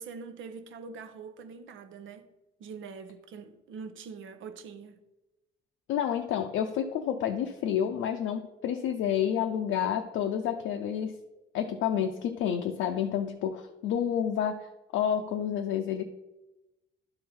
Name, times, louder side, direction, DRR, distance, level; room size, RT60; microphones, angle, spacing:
voice 1, 0.0-2.3 2.6-5.0, right 5 dB, 75° right, 0.8 m, -44 dB
voice 2, 5.9-11.2 11.5-14.7 14.9-16.0, left 9 dB, 90° left, 0.5 m, -29 dB
11.5 x 3.8 x 4.3 m
cardioid pair, 90°, 20 cm